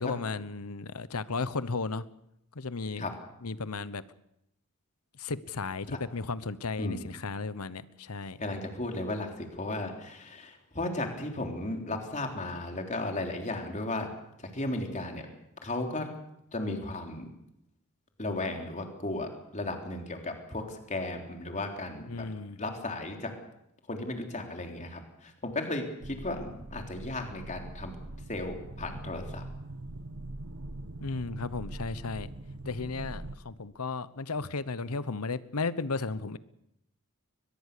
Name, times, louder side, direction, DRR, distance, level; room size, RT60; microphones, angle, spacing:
voice 1, 0.0-2.0 2.5-3.0 3.4-4.0 5.2-8.4 22.1-22.6 31.0-32.3 32.6-36.4, left 4 dB, 85° left, 16 dB, 1.1 m, -34 dB
voice 2, 8.4-14.1 14.4-15.3 15.6-16.1 16.5-17.3 18.2-22.3 22.6-23.3 23.9-28.0 28.3-29.4, left 2 dB, 35° left, 3 dB, 3.5 m, -35 dB
sound 1, 26.0-33.4, right 2 dB, 70° right, 1.4 m, -42 dB
22.5 x 21.0 x 6.8 m, 0.80 s
head